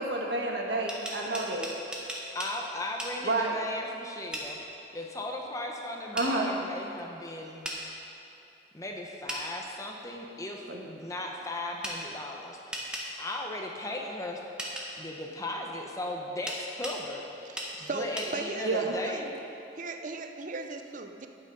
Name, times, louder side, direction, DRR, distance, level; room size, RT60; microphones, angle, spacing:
voice 1, 0.0-1.7 3.2-3.5 6.1-6.5 10.7-10.8 18.6-19.0, right 2 dB, 80° right, 0 dB, 1.6 m, -29 dB
sound 1, 0.7-2.5 3.0-3.1 4.3-4.5 6.2-6.3 7.6-7.8 9.3-9.4 11.8-12.0 12.7-13.1 14.6-14.9 16.5-17.0 17.6-17.7 18.2-18.3, equal, 5° right, 1.4 m, -36 dB
voice 2, 2.3-4.6 4.9-7.8 8.7-12.9 13.2-14.4 15.0-17.5 17.8-19.3, left 1 dB, 20° left, 1 dB, 0.8 m, -37 dB
voice 3, 17.6-19.3 19.8-21.3, right 3 dB, 45° right, 6 dB, 0.6 m, -38 dB
11.5 x 9.1 x 5.3 m, 2.9 s
head